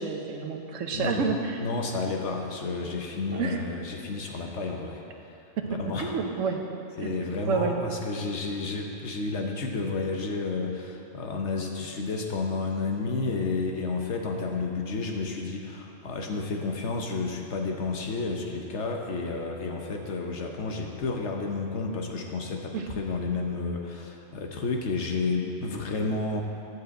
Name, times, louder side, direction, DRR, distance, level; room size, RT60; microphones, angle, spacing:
voice 1, 0.0-1.6 3.3-3.6 5.6-6.6 7.0-7.2 7.5-8.1 22.7-22.9, right 5 dB, 85° right, 3 dB, 1.2 m, -29 dB
voice 2, 0.9-1.2 1.6-5.0 5.8-6.2 7.0-26.4, left 3 dB, 65° left, 2 dB, 1.1 m, -31 dB
11.0 x 4.9 x 7.7 m, 2.7 s
omnidirectional pair, 1.3 m